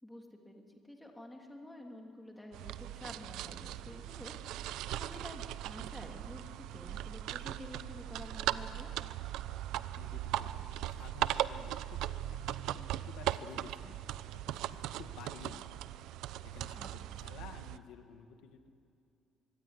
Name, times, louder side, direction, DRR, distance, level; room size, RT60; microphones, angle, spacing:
voice 1, 0.0-4.3 5.0-8.9 16.7-17.2, left 1 dB, 5° left, 1 dB, 2.9 m, -50 dB
sound 1, 2.5-17.8, right 13 dB, 85° right, 0.7 m, -39 dB
voice 2, 10.0-12.2 12.5-15.9 16.5-18.7, left 7 dB, 85° left, 6 dB, 1.9 m, -53 dB
24.5 x 23.0 x 9.9 m, 2.5 s
cardioid pair, 150°, 0 cm